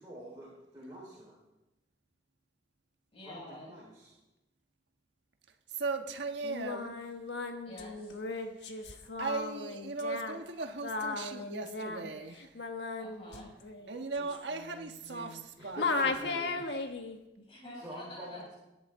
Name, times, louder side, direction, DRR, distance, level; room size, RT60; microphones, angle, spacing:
voice 1, 0.0-1.4 3.2-4.1 15.6-16.8 17.8-18.5, equal, 20° right, 4.1 m, -47 dB
voice 2, 3.1-3.7 7.6-8.2 13.0-13.5 17.3-18.5, left 1 dB, 30° left, 6.2 m, -48 dB
voice 3, 5.7-7.0 9.2-12.5 13.9-16.6, right 3 dB, 75° right, 1.3 m, -38 dB
Singing, 6.4-15.5 15.8-17.2, left 3 dB, 75° left, 1.3 m, -37 dB
21.5 x 10.5 x 3.7 m
head